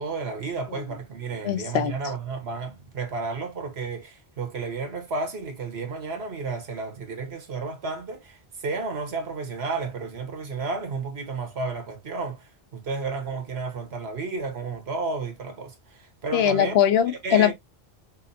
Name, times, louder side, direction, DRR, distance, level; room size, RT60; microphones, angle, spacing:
voice 1, 0.0-16.8 17.2-17.5, right 4 dB, 80° right, 1.3 m, -32 dB
voice 2, 1.4-1.9 16.3-17.5, left 10 dB, 75° left, 0.9 m, -21 dB
5.5 x 2.0 x 2.6 m
omnidirectional pair, 1.1 m